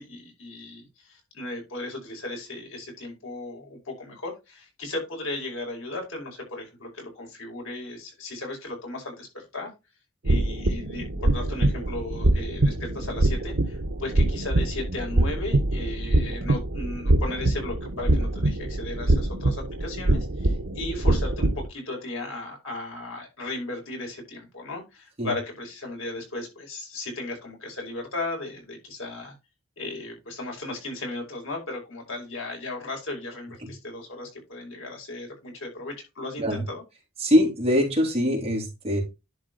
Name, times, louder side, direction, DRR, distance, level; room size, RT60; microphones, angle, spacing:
voice 1, 0.0-9.7 10.2-29.3 29.8-36.8, left 2 dB, 75° left, 5.2 m, -36 dB
sound 1, 10.2-21.7, right 1 dB, 75° right, 1.1 m, -24 dB
voice 2, 37.2-39.0, equal, 30° right, 3.0 m, -23 dB
11.0 x 4.3 x 4.0 m
head